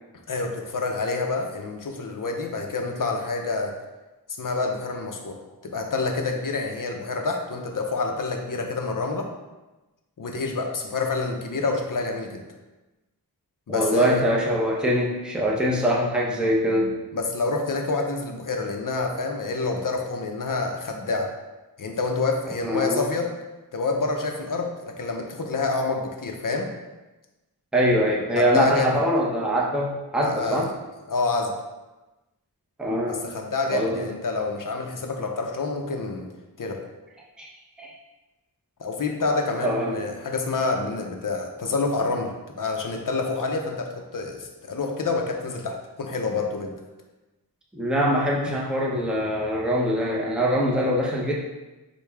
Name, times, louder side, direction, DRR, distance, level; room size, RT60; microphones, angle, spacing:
voice 1, 0.3-3.8 4.4-9.3 10.2-12.4 13.7-14.2 17.1-21.3 21.8-23.3 23.7-26.7 28.4-29.0 30.2-30.7 31.1-31.5 33.1-36.3 36.6-36.8 38.8-46.7, left 3 dB, 55° left, 3 dB, 0.7 m, -27 dB
voice 2, 13.7-17.0 22.6-23.1 27.7-30.7 32.8-33.2 33.7-34.1 37.4-37.5 37.8-37.9 39.6-40.0 47.7-51.3, equal, ahead, -4 dB, 0.7 m, -23 dB
6.3 x 2.3 x 3.4 m, 1.1 s
wide cardioid pair, 65°, 39 cm